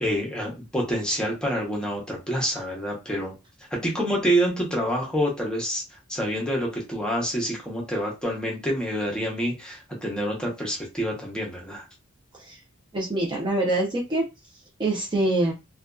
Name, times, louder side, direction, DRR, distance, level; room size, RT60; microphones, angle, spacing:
voice 1, 0.0-3.3 3.7-5.8 6.1-11.8, equal, 5° left, -2 dB, 0.8 m, -27 dB
voice 2, 12.9-14.2 14.8-15.5, right 2 dB, 25° right, -2 dB, 0.5 m, -25 dB
2.5 x 2.2 x 2.2 m, 0.26 s
head